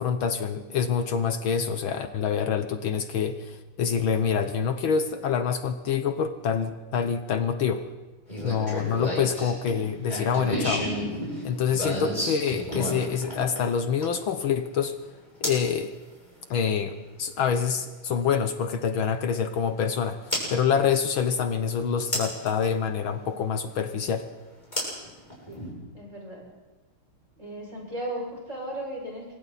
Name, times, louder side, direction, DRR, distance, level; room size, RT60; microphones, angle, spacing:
voice 1, 0.0-7.8 8.4-10.9 11.4-15.0 15.4-15.9 16.5-24.3, left 7 dB, 70° left, 8 dB, 1.7 m, -26 dB
sound 1, 8.3-14.3 15.4-15.7 17.6-17.7 20.3-20.5 22.1-22.5 24.7-25.7, equal, 20° left, 7.7 m, -31 dB
voice 2, 25.9-26.5 27.4-29.4, right 1 dB, 30° right, -2 dB, 6.6 m, -36 dB
27.5 x 24.5 x 4.2 m, 1.2 s
omnidirectional pair, 2.4 m